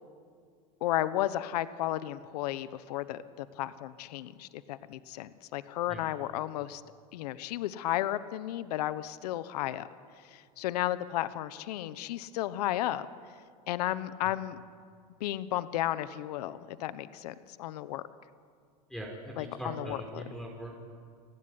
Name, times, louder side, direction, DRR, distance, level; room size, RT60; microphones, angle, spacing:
voice 1, 0.8-6.8 7.1-9.9 10.2-13.1 13.7-14.6 15.2-18.0 19.4-20.2, left 14 dB, 80° left, 14 dB, 1.1 m, -33 dB
voice 2, 18.9-20.8, equal, ahead, -1 dB, 5.0 m, -41 dB
29.0 x 19.0 x 9.8 m, 2.2 s
supercardioid pair, 135°, 20 cm